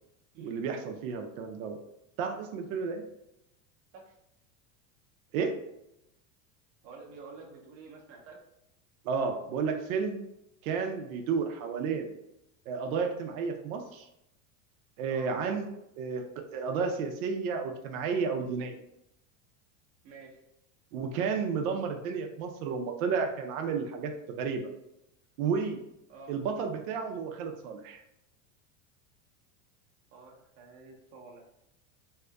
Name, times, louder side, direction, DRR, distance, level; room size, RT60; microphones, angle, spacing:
voice 1, 0.4-1.8 2.2-3.0 5.3-5.6 9.0-10.2 10.6-12.1 12.7-14.1 15.0-15.7 16.0-18.8 20.9-24.6 25.4-25.8 26.3-28.0, right 5 dB, 80° right, 4 dB, 0.5 m, -32 dB
voice 2, 6.8-8.4 15.1-15.3 20.0-20.4 26.1-26.4 30.1-31.4, right 4 dB, 35° right, -1 dB, 0.6 m, -49 dB
2.7 x 2.4 x 2.2 m, 0.83 s
supercardioid pair, 140°, 42 cm